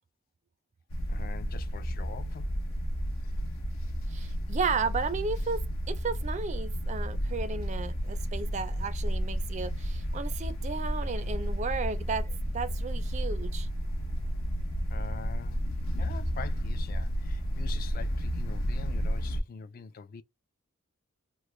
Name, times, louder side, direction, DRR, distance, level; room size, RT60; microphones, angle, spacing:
sound 1, 0.9-19.4, equal, 85° left, 0.9 m, -32 dB
voice 1, 1.1-2.5 3.2-3.3 14.9-15.6 16.0-20.2, left 6 dB, 45° left, 0.3 m, -44 dB
voice 2, 4.1-13.7, right 4 dB, 35° right, 0.4 m, -34 dB
3.0 x 2.1 x 3.1 m
head